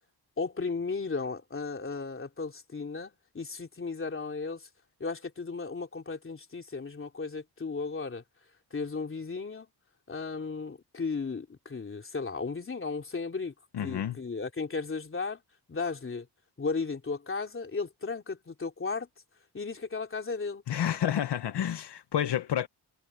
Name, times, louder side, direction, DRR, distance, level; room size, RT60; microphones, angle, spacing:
voice 1, 0.4-4.7 5.0-8.2 8.7-9.7 10.1-13.5 13.8-15.4 15.7-16.3 16.6-19.1 19.5-20.6, left 4 dB, 30° left, 3.2 m, -35 dB
voice 2, 13.7-14.2 20.7-22.7, left 10 dB, 75° left, 1.1 m, -29 dB
wide cardioid pair, 145°, 41 cm